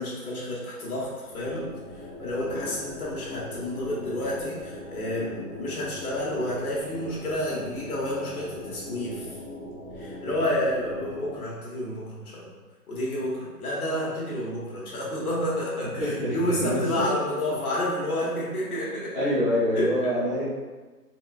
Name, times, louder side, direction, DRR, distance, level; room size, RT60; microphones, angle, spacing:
voice 1, 0.0-1.7 1.9-9.3 10.0-12.5 12.9-19.3 19.7-19.9, left 1 dB, 65° left, -6 dB, 1.4 m, -30 dB
sound 1, 1.3-11.3, left 1 dB, 40° right, 0.7 m, -40 dB
voice 2, 16.0-17.2 19.1-20.4, equal, 5° left, -23 dB, 0.6 m, -26 dB
4.2 x 2.4 x 2.3 m, 1.3 s
figure-of-eight pair, 150°, 47 cm